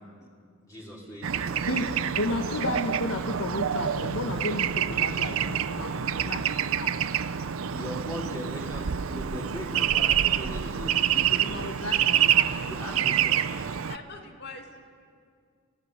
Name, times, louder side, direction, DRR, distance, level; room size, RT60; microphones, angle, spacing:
voice 1, 0.0-1.7 7.7-13.8, left 1 dB, 15° left, -4 dB, 3.0 m, -40 dB
Bird / Traffic noise roadway noise, 1.2-14.0, right 9 dB, 75° right, 0.6 m, -27 dB
voice 2, 2.2-6.9 11.4-12.5, left 2 dB, 80° left, 4 dB, 1.5 m, -33 dB
voice 3, 13.9-14.8, left 3 dB, 50° left, 4 dB, 2.1 m, -43 dB
29.5 x 17.5 x 6.6 m, 2.2 s
head